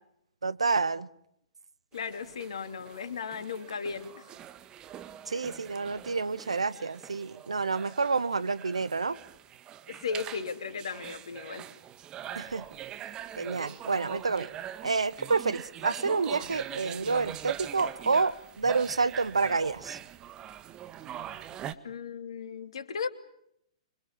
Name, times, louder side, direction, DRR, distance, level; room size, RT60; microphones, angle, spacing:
voice 1, 0.4-1.1 5.3-9.2 12.3-12.6 13.4-14.5 14.8-20.0, right 4 dB, 75° right, 1.3 m, -29 dB
voice 2, 1.9-4.3 9.9-11.7 21.8-23.1, left 5 dB, 65° left, 2.8 m, -36 dB
sound 1, 1.9-21.7, right 10 dB, 25° right, 1.7 m, -43 dB
27.0 x 25.0 x 7.4 m
figure-of-eight pair, 115°, 3 cm